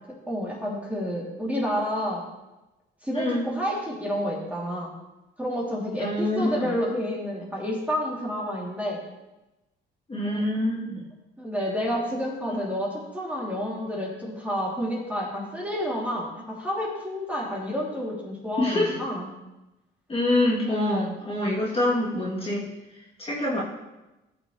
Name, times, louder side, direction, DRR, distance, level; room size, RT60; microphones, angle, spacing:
voice 1, 0.3-2.3 3.0-4.9 5.4-9.0 10.2-10.4 11.4-19.3, equal, 5° right, -5 dB, 3.0 m, -29 dB
voice 2, 3.1-3.5 6.0-6.7 10.1-11.0 18.6-19.0 20.1-22.6 23.2-23.6, left 1 dB, 30° left, -6 dB, 2.9 m, -25 dB
15.0 x 6.2 x 3.2 m, 1.0 s
cardioid pair, 90°, 20 cm